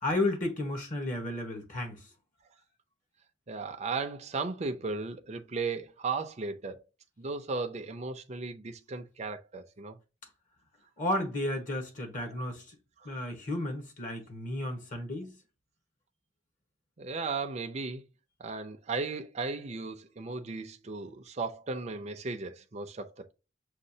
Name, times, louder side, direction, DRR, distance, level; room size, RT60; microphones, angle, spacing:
voice 1, 0.0-2.1 11.0-12.8 13.0-15.3, left 1 dB, 45° left, 1.1 m, -33 dB
voice 2, 3.5-6.8 7.2-10.0 17.0-18.0 18.4-23.3, right 4 dB, 35° right, 0.5 m, -36 dB
6.4 x 2.4 x 2.7 m
head